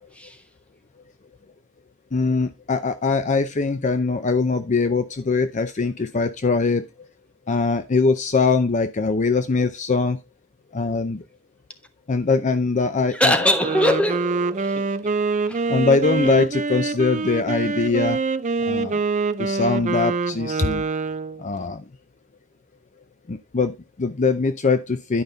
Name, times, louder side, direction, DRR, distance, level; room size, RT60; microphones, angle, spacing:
voice 1, 2.1-6.8 7.5-10.2 10.7-11.2 12.1-13.5 15.7-18.2 18.6-19.0 19.4-20.8 21.4-21.8 23.3-25.2, left 4 dB, 35° left, 0.5 m, -22 dB
voice 2, 13.1-14.9 15.5-15.6, left 1 dB, 5° left, 1.1 m, -22 dB
Wind instrument woodwind instrument, 13.4-21.4, right 4 dB, 35° right, 0.5 m, -25 dB
11.0 x 5.3 x 3.9 m
head